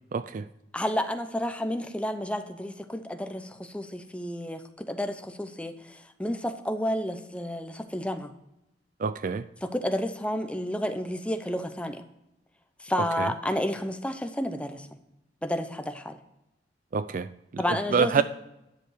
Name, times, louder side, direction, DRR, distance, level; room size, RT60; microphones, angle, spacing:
voice 1, 0.1-0.5 9.0-9.4 13.2-13.3 16.9-17.3 17.5-17.6 17.9-18.2, right 5 dB, 50° right, 0.4 m, -26 dB
voice 2, 0.7-8.3 9.6-12.0 12.8-14.9 15.4-16.2 17.6-18.2, left 1 dB, 5° left, 0.6 m, -31 dB
10.5 x 6.9 x 4.7 m
head